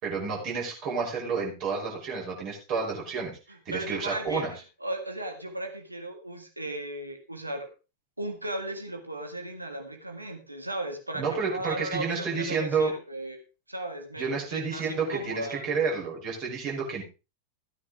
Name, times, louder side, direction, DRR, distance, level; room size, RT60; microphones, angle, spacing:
voice 1, 0.0-4.5 11.2-12.9 14.2-17.0, right 5 dB, 40° right, -2 dB, 5.6 m, -30 dB
voice 2, 3.7-4.4 4.8-7.7 8.2-13.4 13.7-15.6, right 1 dB, 85° right, 4 dB, 2.0 m, -36 dB
15.5 x 9.5 x 3.7 m, 0.31 s
figure-of-eight pair, 90°, 0 cm